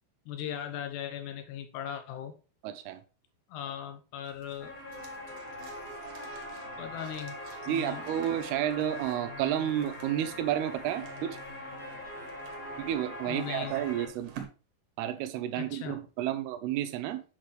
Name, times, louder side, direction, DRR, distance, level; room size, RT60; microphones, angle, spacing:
voice 1, 0.3-2.3 3.5-4.8 6.8-7.4 7.7-8.0 13.3-13.8 15.6-16.0, left 9 dB, 85° left, 3.1 m, -38 dB
voice 2, 2.6-3.0 7.6-11.4 12.8-14.3 15.0-17.2, right 11 dB, 85° right, 2.6 m, -31 dB
sound 1, 4.2-14.5, right 8 dB, 65° right, 2.7 m, -52 dB
sound 2, 4.6-14.1, left 1 dB, 50° left, 4.1 m, -42 dB
8.1 x 6.0 x 3.2 m
omnidirectional pair, 4.7 m